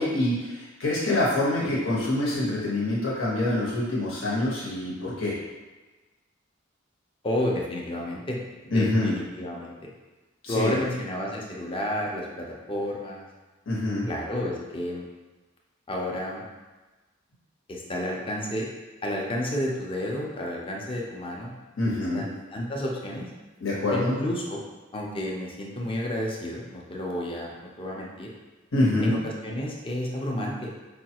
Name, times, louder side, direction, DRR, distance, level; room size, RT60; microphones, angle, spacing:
voice 1, 0.0-5.3 8.7-9.1 10.4-10.7 13.7-14.1 21.8-22.2 23.6-24.2 28.7-29.2, left 1 dB, 75° left, -6 dB, 1.1 m, -25 dB
voice 2, 7.2-8.4 8.6-9.7 10.5-13.3 14.1-15.0 15.9-16.4 17.7-18.7 19.0-21.5 22.1-23.3 23.9-24.6 24.9-28.3 29.0-30.7, left 1 dB, 25° left, -2 dB, 0.6 m, -31 dB
4.9 x 2.3 x 2.9 m, 1.2 s
head